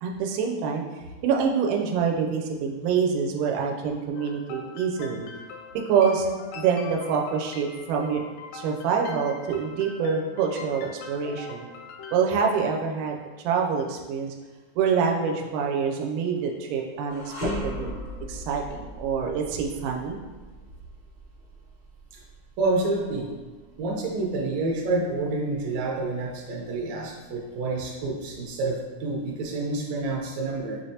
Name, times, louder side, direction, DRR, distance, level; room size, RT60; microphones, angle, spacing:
voice 1, 0.0-0.8 1.2-5.2 5.9-6.3 6.6-8.2 8.5-11.7 12.1-13.2 13.4-14.3 14.8-17.3 17.6-18.0 18.3-20.2, right 6 dB, 85° right, 1 dB, 2.1 m, -26 dB
sound 1, 4.1-12.2, left 5 dB, 85° left, 2.0 m, -42 dB
sound 2, 17.1-26.3 26.7-26.9 27.8-28.7, left 1 dB, 40° right, 0.8 m, -39 dB
voice 2, 22.6-23.3 23.8-30.8, right 2 dB, 70° right, -1 dB, 1.8 m, -28 dB
5.8 x 3.2 x 2.7 m, 1.3 s
omnidirectional pair, 3.6 m